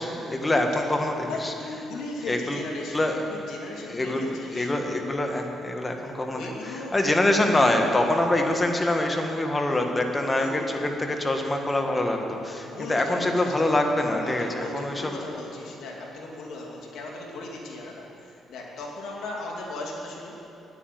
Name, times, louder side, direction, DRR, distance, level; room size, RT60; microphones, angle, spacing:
voice 1, 0.0-1.5 2.3-2.6 2.9-3.2 3.9-6.4 6.9-15.1, left 1 dB, 20° left, 3 dB, 1.6 m, -25 dB
voice 2, 1.3-4.7 6.3-7.0 9.7-9.8 10.1-10.9 12.6-13.8 14.2-20.4, left 2 dB, 75° left, -2 dB, 2.5 m, -37 dB
10.0 x 9.6 x 9.2 m, 2.9 s
cardioid pair, 90°, 0 cm